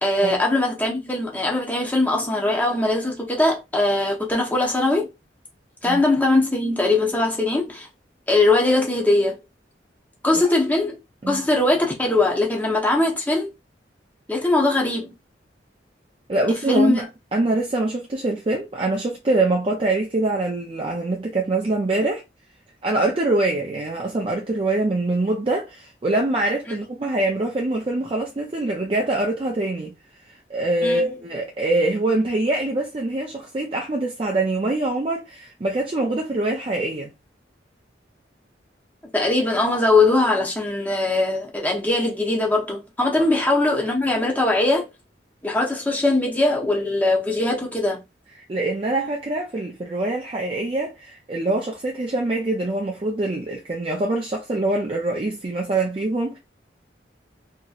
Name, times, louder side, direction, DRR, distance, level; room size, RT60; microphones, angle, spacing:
voice 1, 0.0-5.1 5.8-7.9 8.3-9.4 10.2-11.0 11.3-13.5 14.3-15.1 16.7-17.0 26.7-26.8 30.8-31.1 39.1-44.9 45.4-48.0, left 2 dB, 10° left, 0.8 m, -21 dB
voice 2, 16.3-22.2 22.8-29.9 30.3-37.1 48.5-56.4, right 2 dB, 30° right, 0.4 m, -24 dB
2.9 x 2.7 x 2.3 m
head